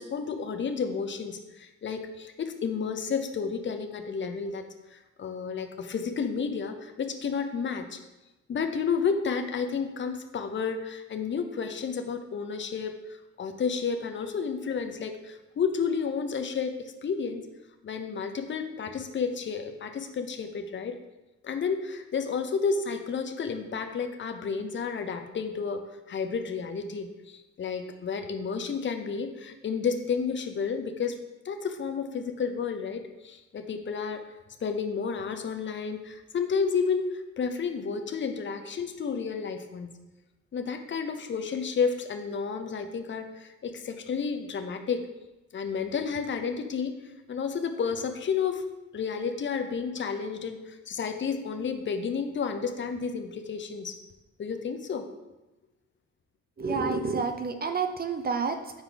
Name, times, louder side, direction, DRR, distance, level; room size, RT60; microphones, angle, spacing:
voice 1, 0.0-4.6 4.9-8.0 8.5-13.0 13.4-17.5 17.8-21.0 21.4-25.8 26.1-31.2 31.4-34.2 34.6-39.9 40.5-45.1 45.5-48.6 48.9-54.0 54.4-55.1, left 5 dB, 40° left, 6 dB, 0.7 m, -31 dB
voice 2, 56.6-58.8, right 4 dB, 30° right, 7 dB, 0.6 m, -29 dB
6.4 x 4.6 x 4.0 m, 1.0 s
cardioid pair, 115°, 31 cm